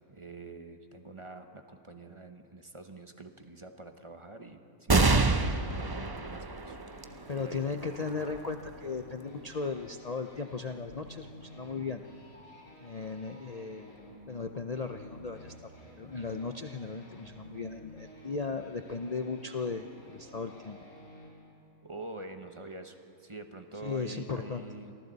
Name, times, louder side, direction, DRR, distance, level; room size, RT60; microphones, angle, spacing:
voice 1, 0.1-6.8 7.3-7.6 21.8-24.9, right 2 dB, 25° right, 6 dB, 1.0 m, -46 dB
sound 1, 4.9-11.8 12.4-12.5 13.6-14.2, right 3 dB, 40° right, 0.3 m, -31 dB
sound 2, 6.8-21.3, equal, 55° left, 5.6 m, -51 dB
voice 2, 7.3-12.0 12.8-13.9 14.3-15.7 16.0-20.8 23.8-24.6, left 4 dB, 75° left, 5 dB, 0.3 m, -36 dB
29.0 x 24.0 x 4.1 m, 2.7 s
omnidirectional pair, 1.6 m